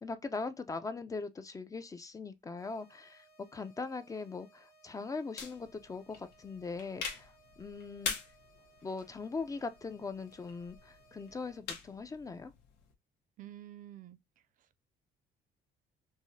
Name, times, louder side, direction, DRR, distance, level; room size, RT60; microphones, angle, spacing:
voice 1, 0.0-8.1 8.8-12.5, left 4 dB, 20° left, 0.4 m, -41 dB
sound 1, 2.6-11.6, right 2 dB, 60° left, 1.1 m, -64 dB
sound 2, 5.4-12.9, left 6 dB, 85° left, 0.9 m, -45 dB
voice 2, 13.4-14.2, right 13 dB, 55° right, 0.4 m, -48 dB
4.6 x 2.1 x 2.6 m
cardioid pair, 110°, 17 cm